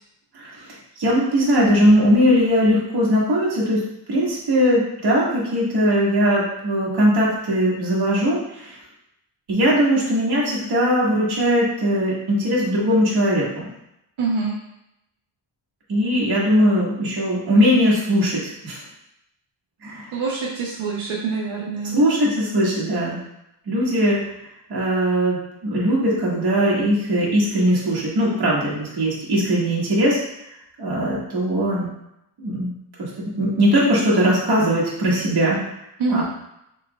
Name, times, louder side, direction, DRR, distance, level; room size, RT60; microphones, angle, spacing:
voice 1, 0.3-3.8 4.1-8.8 9.5-13.7 15.9-18.8 19.8-20.1 21.9-23.2 23.7-24.2 24.7-30.2 30.8-31.9 32.4-32.7 33.0-35.6 36.1-36.2, equal, 55° right, -6 dB, 1.6 m, -20 dB
voice 2, 14.2-14.6 20.1-22.0 36.0-36.2, right 4 dB, 90° right, -4 dB, 0.9 m, -25 dB
6.2 x 3.3 x 2.3 m, 0.82 s
wide cardioid pair, 150°, 47 cm